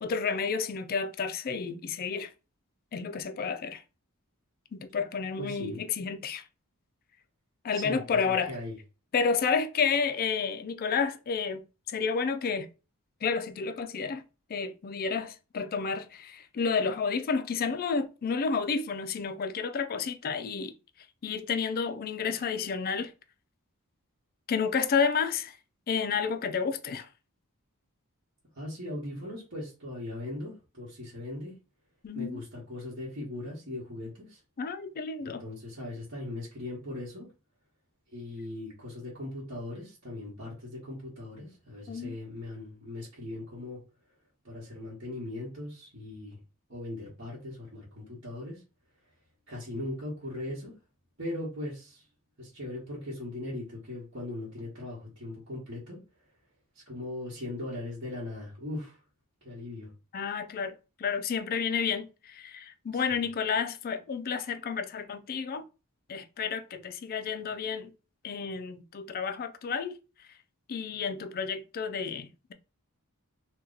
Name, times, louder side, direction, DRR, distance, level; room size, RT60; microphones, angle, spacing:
voice 1, 0.0-2.3 2.9-3.8 4.7-6.4 7.6-8.5 9.1-11.6 11.9-12.7 13.2-14.2 14.5-20.7 21.2-23.1 24.5-25.5 25.9-27.1 32.0-32.4 34.6-35.4 41.9-42.1 60.1-65.6 66.1-67.9 68.2-70.0 70.7-72.5, left 5 dB, 40° left, 0.4 m, -30 dB
voice 2, 5.4-5.8 7.7-8.8 28.5-31.6 32.1-34.4 35.2-37.3 38.1-43.8 44.4-46.4 46.7-48.6 49.5-50.7 51.2-52.1 52.4-56.0 56.7-59.0 59.4-59.9 60.3-60.4 62.9-63.2, left 1 dB, 55° right, 1.2 m, -39 dB
2.8 x 2.3 x 3.8 m
head